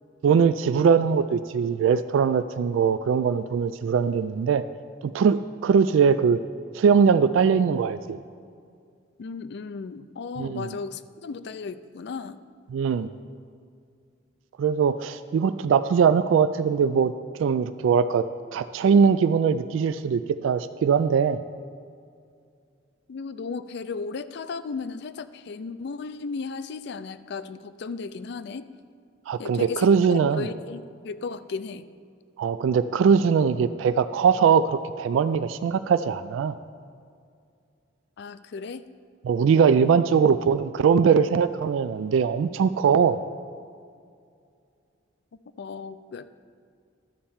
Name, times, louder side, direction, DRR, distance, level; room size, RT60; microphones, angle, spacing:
voice 1, 0.2-4.6 5.0-6.4 6.7-8.2 10.4-10.7 12.7-13.1 14.6-17.1 17.4-21.4 29.3-30.5 32.4-36.5 39.2-43.2, right 6 dB, 90° right, 12 dB, 0.3 m, -21 dB
voice 2, 9.2-12.4 23.1-28.7 29.4-31.9 38.2-38.8 45.6-46.3, left 4 dB, 60° left, 13 dB, 0.4 m, -35 dB
12.0 x 4.3 x 7.1 m, 2.3 s
head